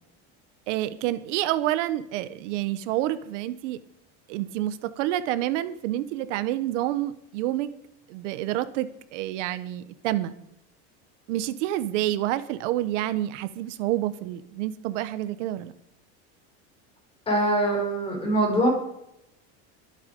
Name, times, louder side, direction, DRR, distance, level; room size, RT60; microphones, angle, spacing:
voice 1, 0.7-3.8 4.3-7.7 8.1-10.3 11.3-15.7, right 14 dB, 80° right, 12 dB, 1.2 m, -28 dB
voice 2, 17.3-18.7, right 1 dB, 15° left, 0 dB, 5.8 m, -23 dB
22.5 x 9.1 x 5.3 m, 0.82 s
cardioid pair, 175°, 36 cm